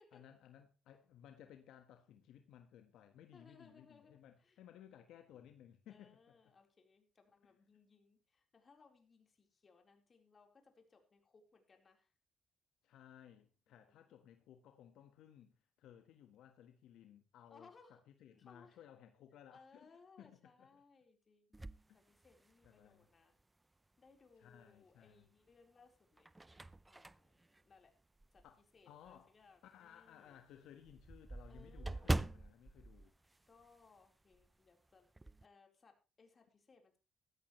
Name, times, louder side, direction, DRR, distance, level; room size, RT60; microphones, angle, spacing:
voice 1, 0.1-6.4 12.8-17.7 18.1-19.9 20.2-20.8 21.9-22.0 22.6-23.1 24.4-25.3 28.4-28.6 28.8-29.3 29.6-33.1, left 10 dB, 85° left, 1.5 m, -60 dB
voice 2, 3.3-4.6 5.3-5.4 5.9-12.1 13.7-14.2 17.5-18.0 18.3-18.8 19.5-23.4 24.0-26.3 26.9-27.3 27.6-27.9 28.3-28.5 28.7-30.4 31.5-32.3 33.5-35.1 35.4-37.0, left 4 dB, 40° left, 4.2 m, -66 dB
sound 1, 21.5-22.9 23.4-23.5 25.0-25.5 26.0-28.6 29.0-29.2 29.5-29.6 29.9-30.0 30.3-34.1 34.3-34.5 34.9-35.5, right 2 dB, 15° right, 0.5 m, -43 dB
15.5 x 13.5 x 3.2 m
cardioid pair, 90°, 0 cm